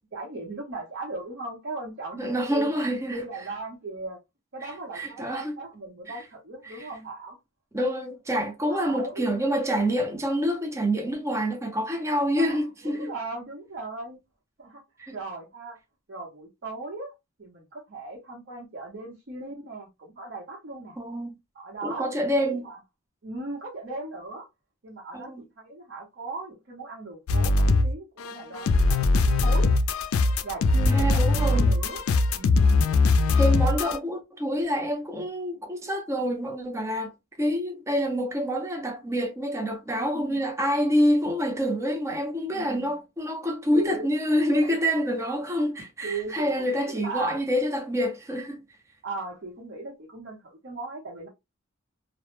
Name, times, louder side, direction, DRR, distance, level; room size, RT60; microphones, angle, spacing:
voice 1, 0.1-2.8 3.1-4.2 4.5-7.4 8.7-9.3 12.3-14.2 14.6-14.8 15.1-15.8 16.1-17.1 17.4-21.0 21.5-22.1 22.3-22.8 23.2-24.5 24.8-29.8 30.4-32.0 32.3-32.9 40.0-40.4 42.5-42.9 43.7-44.1 45.2-45.3 46.0-47.4 49.0-51.3, right 2 dB, 55° right, 0.8 m, -38 dB
voice 2, 2.2-3.2 4.9-5.6 6.1-6.2 6.7-6.9 7.7-13.1 15.0-15.2 21.0-21.3 21.8-22.7 25.1-25.4 30.9-31.7 33.4-37.1 37.4-48.6, equal, 15° right, 0.4 m, -27 dB
sound 1, 27.3-27.9 28.2-34.0, left 3 dB, 90° left, 0.3 m, -21 dB
2.0 x 2.0 x 3.0 m
head